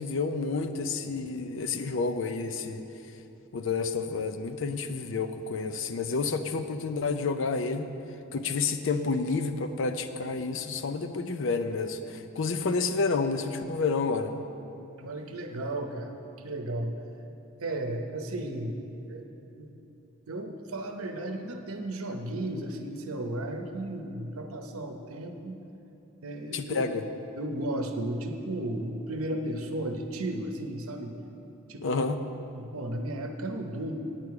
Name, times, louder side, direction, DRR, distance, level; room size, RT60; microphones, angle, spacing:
voice 1, 0.0-2.8 3.5-7.9 8.3-14.3 26.5-27.0 31.8-32.2, left 4 dB, 60° left, 9 dB, 0.5 m, -29 dB
voice 2, 15.0-16.1 16.4-16.9 17.6-18.8 19.1-19.3 19.6-19.7 20.3-25.6 26.2-26.9 27.4-31.1 31.7-32.0 32.5-34.0, right 1 dB, 80° right, 4 dB, 0.8 m, -34 dB
8.9 x 8.3 x 4.7 m, 3.0 s
head